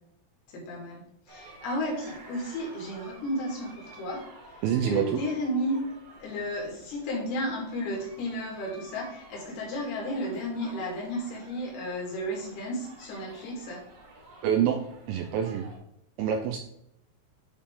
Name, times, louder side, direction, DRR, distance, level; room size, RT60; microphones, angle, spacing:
voice 1, 0.5-1.0 1.3-4.2 4.8-5.8 6.2-13.8, equal, 70° left, -3 dB, 3.9 m, -33 dB
sound 1, 1.3-15.8, right 2 dB, 45° right, 1.9 m, -51 dB
voice 2, 4.6-5.2 14.4-15.7 16.2-16.6, right 8 dB, 80° right, 4 dB, 2.1 m, -26 dB
10.0 x 4.2 x 3.6 m, 0.74 s
omnidirectional pair, 4.8 m